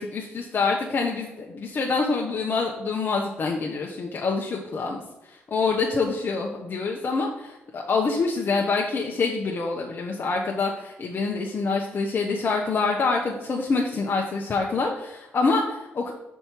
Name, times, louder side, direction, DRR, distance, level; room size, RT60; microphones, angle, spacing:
voice 1, 0.0-16.1, left 4 dB, 50° left, 0 dB, 0.8 m, -26 dB
5.4 x 4.6 x 4.5 m, 0.96 s
supercardioid pair, 55°, 5 cm